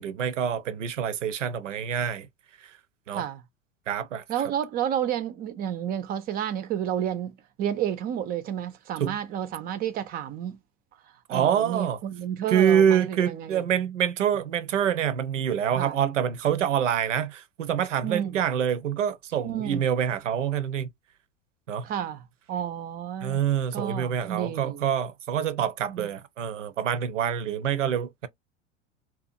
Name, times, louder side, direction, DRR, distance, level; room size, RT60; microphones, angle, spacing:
voice 1, 0.0-2.3 3.1-3.3 3.9-4.2 9.0-9.2 11.3-12.0 12.5-20.9 21.7-21.8 23.2-28.3, right 9 dB, 75° right, 0.6 m, -26 dB
voice 2, 4.3-10.6 11.3-13.6 15.7-16.0 18.0-18.4 19.4-19.9 21.8-23.4 23.7-24.8 25.9-26.1, right 10 dB, 25° right, 0.4 m, -31 dB
2.7 x 2.3 x 2.5 m
figure-of-eight pair, 80°, 37 cm